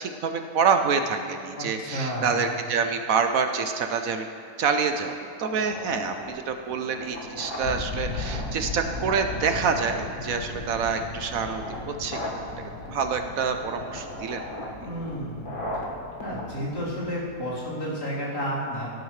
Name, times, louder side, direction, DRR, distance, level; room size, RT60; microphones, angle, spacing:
voice 1, 0.0-4.3 4.6-5.1 5.4-14.4 14.8-14.9, right 5 dB, 65° right, 6 dB, 1.0 m, -27 dB
voice 2, 1.6-2.4 14.8-15.5 16.2-18.9, equal, 80° left, -9 dB, 4.0 m, -31 dB
sound 1, 5.5-17.5, left 1 dB, 30° left, 1.7 m, -38 dB
sound 2, 7.6-16.6, left 3 dB, 55° left, 1.1 m, -37 dB
18.5 x 10.5 x 3.2 m, 2.4 s
omnidirectional pair, 1.7 m